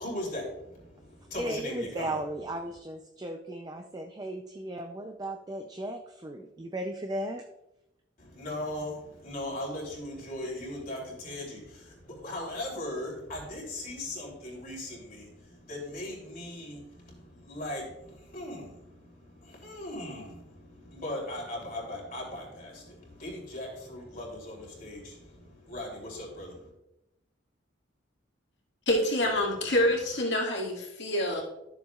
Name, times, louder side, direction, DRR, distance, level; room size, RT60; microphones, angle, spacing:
voice 1, 0.0-2.2 8.2-26.7, left 1 dB, 45° left, -2 dB, 3.2 m, -39 dB
voice 2, 1.4-7.4, right 1 dB, 20° right, 3 dB, 0.5 m, -36 dB
voice 3, 28.9-31.4, left 1 dB, 65° left, -2 dB, 2.3 m, -27 dB
13.0 x 7.1 x 2.4 m, 0.88 s
head